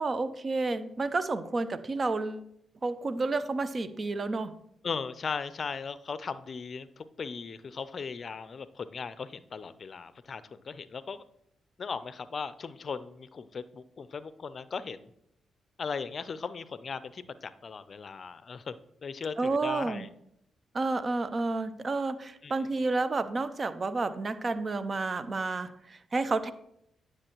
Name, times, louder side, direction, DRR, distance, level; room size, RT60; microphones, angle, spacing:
voice 1, 0.0-2.5 2.8-4.5 19.4-20.1 20.7-26.5, right 3 dB, 40° right, 13 dB, 0.6 m, -30 dB
voice 2, 4.8-11.2 11.8-15.1 15.8-18.7 19.0-20.1 22.4-22.5, left 5 dB, 50° left, 15 dB, 0.5 m, -38 dB
9.9 x 6.4 x 3.0 m, 0.75 s
hypercardioid pair, 45°, 0 cm